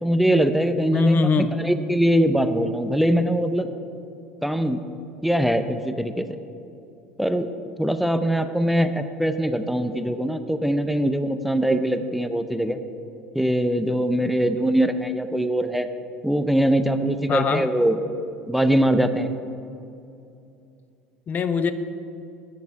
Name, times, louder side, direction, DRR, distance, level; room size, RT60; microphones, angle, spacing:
voice 1, 0.0-3.7 4.4-4.8 5.2-6.4 7.2-7.5 7.8-12.8 13.3-15.9 16.2-18.0 18.5-19.3, right 1 dB, ahead, 9 dB, 0.6 m, -22 dB
voice 2, 0.9-1.5 17.3-17.7 21.3-21.7, left 5 dB, 40° left, 11 dB, 0.6 m, -21 dB
12.0 x 8.6 x 4.7 m, 2.6 s
hypercardioid pair, 75°, 5 cm